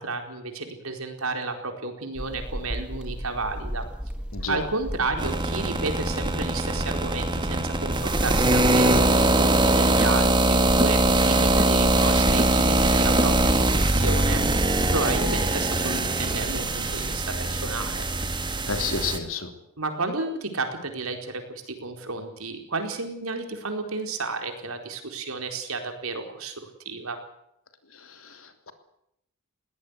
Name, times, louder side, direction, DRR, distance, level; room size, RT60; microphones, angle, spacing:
voice 1, 0.0-3.9 4.5-14.4 14.9-18.1 19.8-26.5 26.8-27.2, right 3 dB, 80° right, 5 dB, 4.4 m, -32 dB
sound 1, 2.1-9.4, equal, 5° right, 1.5 m, -35 dB
voice 2, 4.3-4.6 18.7-19.5 28.0-28.7, left 4 dB, 75° left, 7 dB, 3.2 m, -31 dB
sound 2, 5.2-19.2, right 1 dB, 20° right, 1.9 m, -22 dB
21.0 x 18.0 x 8.2 m, 0.77 s
head